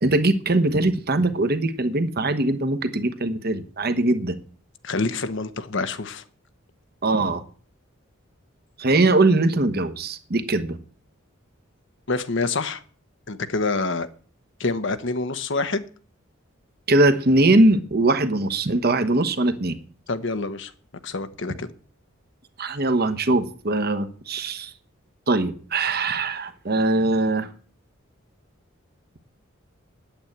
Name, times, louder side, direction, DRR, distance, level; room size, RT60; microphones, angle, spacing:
voice 1, 0.0-4.4 7.0-7.4 8.8-10.8 16.9-19.8 22.6-24.7 25.3-27.5, right 2 dB, 50° right, 1.2 m, -21 dB
voice 2, 4.8-6.2 12.1-12.8 13.3-14.1 14.6-15.8 20.1-20.7 21.0-21.7, left 3 dB, 65° left, 1.1 m, -26 dB
9.4 x 8.8 x 8.7 m
head